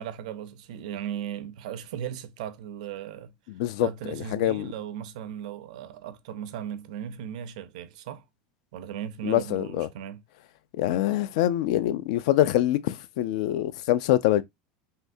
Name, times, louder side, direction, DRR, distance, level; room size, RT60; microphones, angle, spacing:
voice 1, 0.0-3.3 3.8-8.3 8.7-10.2, right 10 dB, 85° right, 0.5 m, -37 dB
voice 2, 3.6-3.9 4.3-4.7 9.2-9.9 10.8-14.4, left 13 dB, 70° left, 0.3 m, -24 dB
3.5 x 2.7 x 2.6 m
supercardioid pair, 170°, 4 cm